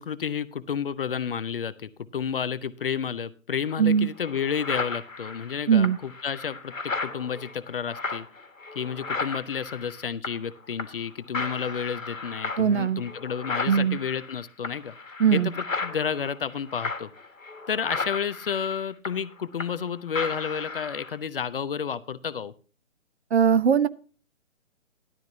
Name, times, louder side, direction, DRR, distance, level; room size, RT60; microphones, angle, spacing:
voice 1, 0.0-8.3 8.7-14.9 15.3-17.1 17.7-22.5, left 7 dB, 45° left, 16 dB, 0.7 m, -31 dB
sound 1, 3.7-3.8 4.2-10.5 10.8-11.1 11.3-19.9 20.1-21.2, left 3 dB, 80° left, 1.7 m, -35 dB
voice 2, 3.8-4.1 5.7-6.0 12.6-13.0 13.7-14.0 15.2-15.5 23.3-23.9, right 7 dB, 55° right, 16 dB, 0.8 m, -20 dB
13.0 x 11.5 x 2.7 m, 0.36 s
figure-of-eight pair, 135°, 39 cm